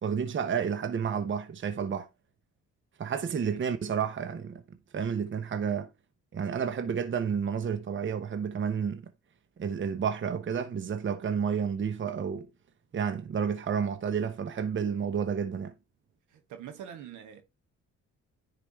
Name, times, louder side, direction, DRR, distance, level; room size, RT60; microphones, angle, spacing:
voice 1, 0.0-2.1 3.0-4.6 4.9-5.9 6.3-9.1 9.6-12.5 12.9-15.7, right 7 dB, 40° right, 1.0 m, -30 dB
voice 2, 3.3-3.6 16.3-17.4, right 9 dB, 90° right, 1.8 m, -44 dB
10.0 x 4.9 x 3.2 m
cardioid pair, 90°, 30 cm